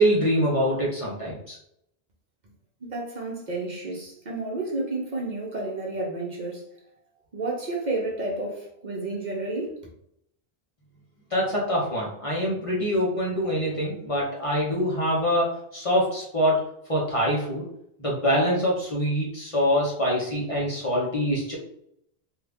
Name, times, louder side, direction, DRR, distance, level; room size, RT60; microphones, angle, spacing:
voice 1, 0.0-1.6 11.3-16.6 16.9-17.7 18.0-21.6, equal, 35° left, 0.8 m, -24 dB
voice 2, 2.8-6.6 7.3-9.9, right 2 dB, 50° right, 0.8 m, -31 dB
2.8 x 2.4 x 3.4 m
omnidirectional pair, 1.0 m